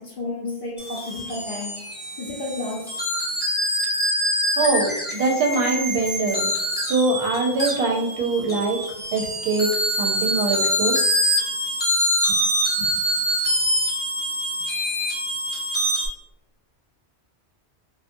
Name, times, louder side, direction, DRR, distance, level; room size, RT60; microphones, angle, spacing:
voice 1, 0.0-1.7 2.2-2.9 12.8-12.9, left 2 dB, 60° left, -5 dB, 0.7 m, -31 dB
sound 1, 0.8-16.1, equal, 15° left, 0.4 m, -25 dB
voice 2, 4.6-6.5 6.8-8.8 9.1-9.7 10.0-11.0, right 3 dB, 65° right, 0 dB, 0.7 m, -23 dB
2.5 x 2.2 x 2.5 m, 0.85 s
omnidirectional pair, 1.1 m